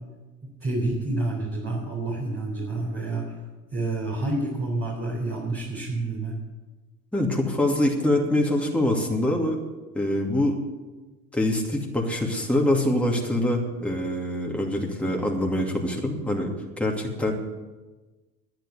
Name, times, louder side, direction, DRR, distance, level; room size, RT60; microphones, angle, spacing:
voice 1, 0.6-3.3 3.7-6.4, right 2 dB, 30° right, -4 dB, 4.1 m, -28 dB
voice 2, 7.1-9.6 9.9-10.6 11.3-17.3, left 1 dB, 5° left, -1 dB, 2.6 m, -24 dB
10.5 x 10.5 x 8.2 m, 1.2 s
figure-of-eight pair, 60°, 41 cm